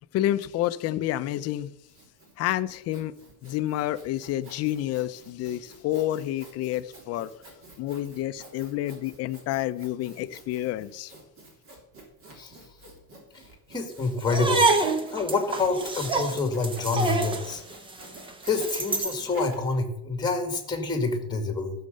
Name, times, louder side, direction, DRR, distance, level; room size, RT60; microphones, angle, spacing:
voice 1, 0.1-1.8 2.4-3.1 3.4-7.3 7.8-11.1, left 13 dB, 40° left, 12 dB, 0.6 m, -29 dB
Sawing, 1.5-19.6, right 2 dB, 35° right, 3.1 m, -50 dB
voice 2, 13.7-14.7 15.1-17.6 18.4-21.7, left 3 dB, 10° left, 5 dB, 2.0 m, -27 dB
sound 1, 14.2-19.2, right 3 dB, 15° right, 0.8 m, -27 dB
14.5 x 6.6 x 6.6 m, 0.79 s
cardioid pair, 175°, 37 cm